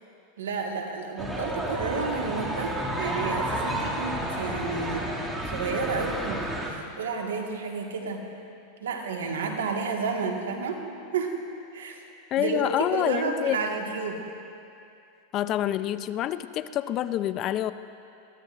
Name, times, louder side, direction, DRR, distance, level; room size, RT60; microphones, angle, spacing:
voice 1, 0.4-5.1 5.5-6.4 6.7-8.3 8.8-10.8 11.1-11.4 11.7-12.0 12.4-12.6 12.9-14.2, right 4 dB, 85° right, 2 dB, 1.6 m, -31 dB
sound 1, 1.2-6.7, right 1 dB, 10° right, 2.3 m, -31 dB
voice 2, 12.3-13.6 15.3-17.7, left 12 dB, 45° left, 14 dB, 0.5 m, -27 dB
21.5 x 15.0 x 2.5 m, 2.6 s
hypercardioid pair, 110°, 0 cm